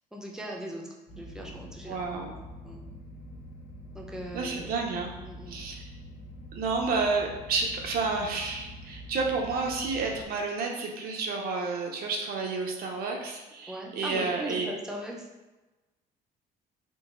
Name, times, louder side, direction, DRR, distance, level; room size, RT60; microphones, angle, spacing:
voice 1, 0.1-2.3 2.6-2.8 3.9-4.8 5.2-5.7 13.7-15.3, right 1 dB, 5° right, -1 dB, 0.6 m, -39 dB
sound 1, 1.1-10.2, equal, 35° left, 0.9 m, -45 dB
voice 2, 1.9-2.3 4.3-5.1 5.5-5.9 6.5-14.7, right 4 dB, 60° right, 1 dB, 0.7 m, -30 dB
3.8 x 2.0 x 3.7 m, 1.1 s
cardioid pair, 110°, 17 cm